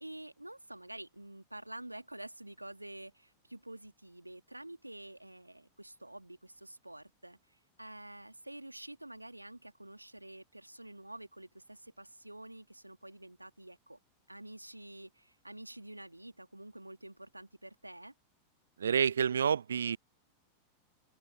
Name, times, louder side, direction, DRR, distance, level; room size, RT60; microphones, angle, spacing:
voice 1, 0.0-14.0 14.3-18.1, right 1 dB, 85° right, 2.4 m, -49 dB
voice 2, 18.8-20.0, right 7 dB, 70° right, 0.5 m, -28 dB
figure-of-eight pair, 90°, 0 cm